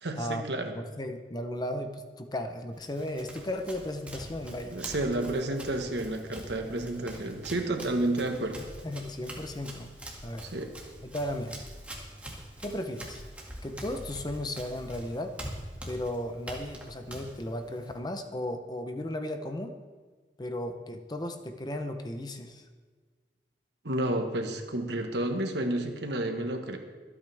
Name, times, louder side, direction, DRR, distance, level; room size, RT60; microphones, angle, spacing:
voice 1, 0.0-0.8 4.7-8.6 10.4-10.7 23.8-26.8, right 1 dB, 80° right, 5 dB, 1.4 m, -31 dB
voice 2, 0.8-4.8 8.8-9.9 10.2-10.5 11.0-11.6 12.6-13.2 13.6-15.3 15.9-19.8 20.4-22.6, left 1 dB, 25° left, 7 dB, 0.7 m, -35 dB
Run, 2.7-18.0, right 1 dB, 10° right, 2.0 m, -44 dB
24.5 x 8.7 x 3.5 m, 1.4 s
head